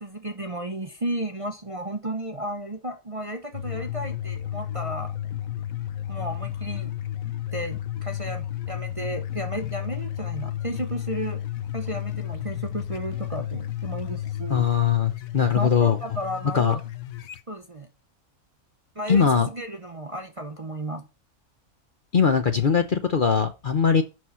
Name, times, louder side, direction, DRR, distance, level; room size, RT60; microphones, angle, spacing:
voice 1, 0.0-5.1 6.1-6.9 7.5-11.4 11.7-14.7 15.5-16.8 17.5-17.9 18.9-21.0, right 1 dB, 30° right, 0.7 m, -33 dB
sound 1, 3.5-17.4, left 12 dB, 75° left, 1.1 m, -32 dB
voice 2, 14.5-16.0 16.5-16.7 19.1-19.5 22.1-24.0, left 7 dB, 45° left, 0.7 m, -21 dB
6.3 x 6.2 x 5.5 m
omnidirectional pair, 1.5 m